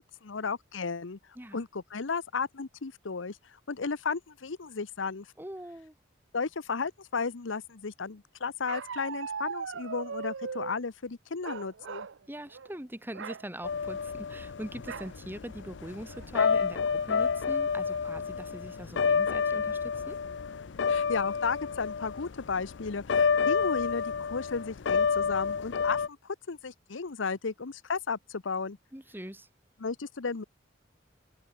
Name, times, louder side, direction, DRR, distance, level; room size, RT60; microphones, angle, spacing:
voice 1, 0.0-1.2 1.5-3.4 3.7-5.3 6.3-12.1 20.9-28.8 29.8-30.4, left 4 dB, 80° left, 0.8 m, -34 dB
voice 2, 5.4-5.9 12.3-20.2 28.9-29.5, right 1 dB, 10° right, 2.5 m, -42 dB
Bark, 8.7-10.8 11.4-12.2 12.5-12.7 13.1-13.4 14.9-15.1 15.7-15.8 16.1-16.5, right 6 dB, 70° right, 0.6 m, -39 dB
sound 1, 13.6-26.1, left 6 dB, 65° left, 0.5 m, -29 dB
open air
head